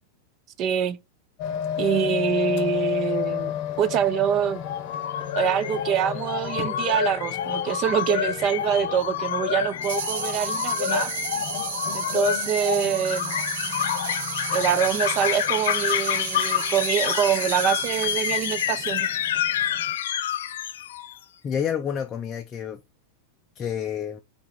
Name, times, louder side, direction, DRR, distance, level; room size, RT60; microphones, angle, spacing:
voice 1, 0.6-1.0 1.8-4.6 5.3-11.1 11.9-13.4 14.5-19.1, right 9 dB, 35° right, 0.5 m, -25 dB
sound 1, 1.4-19.9, left 9 dB, 40° left, 0.8 m, -34 dB
sound 2, 4.6-21.2, left 10 dB, 85° left, 0.4 m, -28 dB
sound 3, 9.8-19.0, right 9 dB, 70° right, 0.8 m, -33 dB
voice 2, 21.4-22.8 23.6-24.2, left 8 dB, 20° left, 0.4 m, -29 dB
4.5 x 2.9 x 4.0 m
supercardioid pair, 155°, 0 cm